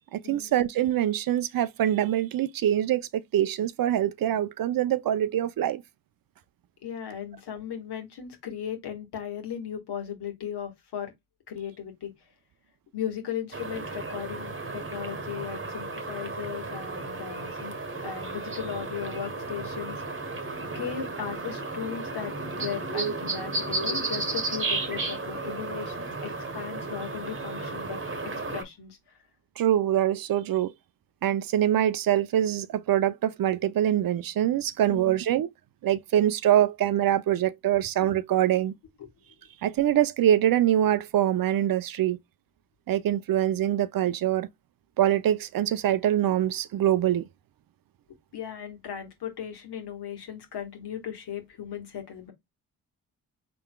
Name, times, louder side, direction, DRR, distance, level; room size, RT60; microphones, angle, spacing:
voice 1, 0.1-5.8 29.6-30.7 31.2-35.5 35.8-38.7 39.6-42.2 42.9-44.5 45.0-47.2, right 11 dB, 50° right, 0.5 m, -24 dB
voice 2, 6.8-11.1 11.5-12.1 12.9-17.8 18.0-20.0 20.6-28.0 28.5-29.0 34.9-35.2 39.0-39.1 48.3-52.3, left 9 dB, 65° left, 1.6 m, -37 dB
sound 1, 13.5-28.6, right 3 dB, 30° right, 1.1 m, -33 dB
4.4 x 3.8 x 2.2 m
hypercardioid pair, 45°, 43 cm